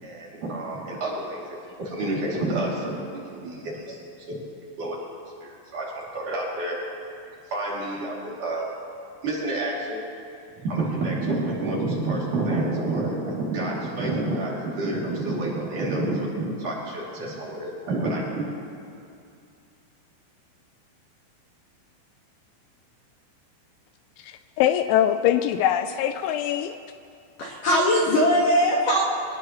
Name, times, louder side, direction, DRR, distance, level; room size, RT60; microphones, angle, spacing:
voice 1, 0.0-1.4 1.8-4.0 4.3-4.4 4.8-5.0 5.4-6.8 7.5-8.7 9.2-10.0 10.6-18.4, right 2 dB, 45° right, -5 dB, 3.7 m, -28 dB
voice 2, 24.2-26.8, left 11 dB, 85° left, 9 dB, 2.8 m, -23 dB
voice 3, 27.4-29.0, equal, 60° left, -3 dB, 2.4 m, -20 dB
25.0 x 18.5 x 3.1 m, 2.5 s
omnidirectional pair, 5.6 m